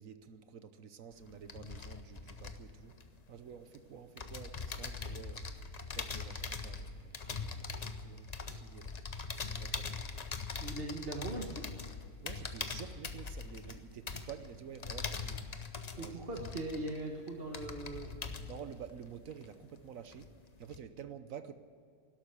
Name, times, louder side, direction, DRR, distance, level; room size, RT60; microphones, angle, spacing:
voice 1, 0.0-3.0 3.3-5.5 5.9-8.9 9.3-10.0 12.2-15.5 16.0-16.5 18.4-20.3 20.6-21.5, right 8 dB, 60° right, 11 dB, 1.0 m, -50 dB
sound 1, 1.1-3.8 4.2-19.8 20.1-20.8, left 4 dB, 40° left, 0.5 m, -42 dB
voice 2, 10.6-11.6 16.0-18.2, right 2 dB, 35° right, 1 dB, 1.4 m, -40 dB
12.5 x 12.0 x 9.8 m, 2.4 s
omnidirectional pair, 1.9 m